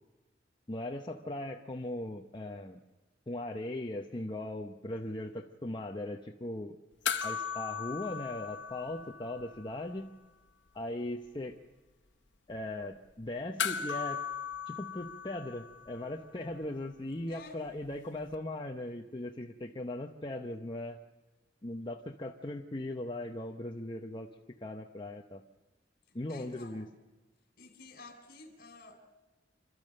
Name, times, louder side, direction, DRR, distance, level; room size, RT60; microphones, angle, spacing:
voice 1, 0.7-2.8 3.3-6.8 7.2-10.1 10.7-11.6 12.5-14.2 14.7-21.0 21.6-24.3 24.6-25.4 26.1-26.9, left 1 dB, 25° left, 2 dB, 0.8 m, -39 dB
sound 1, 7.0-9.7 10.0-10.1 13.6-16.2 18.3-18.4, left 7 dB, 85° left, 1.1 m, -37 dB
voice 2, 17.3-17.7 26.1-27.0 27.6-29.0, left 3 dB, 55° left, 6 dB, 3.8 m, -52 dB
28.5 x 12.5 x 7.6 m, 1.2 s
head